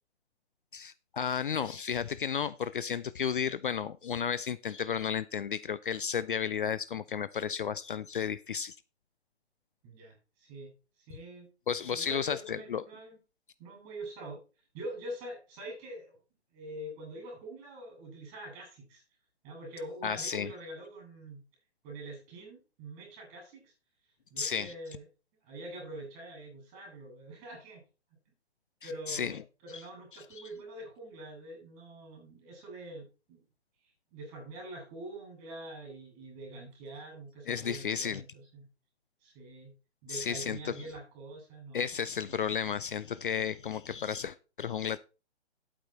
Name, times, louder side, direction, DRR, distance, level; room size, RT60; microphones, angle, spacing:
voice 1, 0.7-8.8 11.7-12.8 20.0-20.5 24.4-24.7 28.8-29.4 29.7-29.8 30.1-30.4 37.5-38.2 40.1-40.9 41.7-45.0, left 7 dB, 50° left, 17 dB, 0.6 m, -33 dB
voice 2, 9.8-10.7 11.1-11.5 11.8-13.2 13.6-14.4 14.7-16.2 16.5-19.0 19.4-21.4 21.8-23.7 24.3-25.0 25.4-27.8 28.8-33.4 33.8-38.7 39.2-39.7 40.0-41.9, right 1 dB, 25° right, 1 dB, 6.9 m, -45 dB
10.5 x 8.7 x 4.3 m, 0.32 s
figure-of-eight pair, 135°, 34 cm